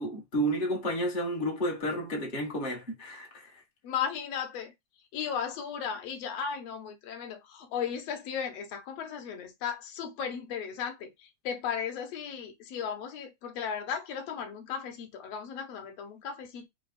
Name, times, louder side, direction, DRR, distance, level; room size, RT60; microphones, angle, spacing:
voice 1, 0.0-3.5, equal, 35° left, 0.8 m, -31 dB
voice 2, 3.8-4.7 5.1-11.1 11.4-16.7, left 7 dB, 70° left, 1.7 m, -35 dB
4.8 x 2.3 x 4.2 m
omnidirectional pair, 3.5 m